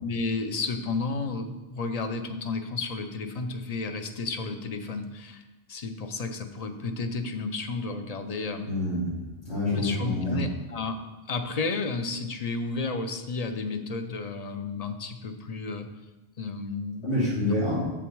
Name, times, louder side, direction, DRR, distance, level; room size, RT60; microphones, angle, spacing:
voice 1, 0.0-5.4 5.7-8.8 9.7-11.0 11.3-15.9 16.4-17.6, left 3 dB, 40° left, 8 dB, 0.7 m, -32 dB
voice 2, 8.6-9.2 9.4-10.4 17.0-17.9, left 1 dB, 75° left, -8 dB, 3.0 m, -27 dB
7.3 x 7.2 x 4.6 m, 1.1 s
omnidirectional pair, 1.1 m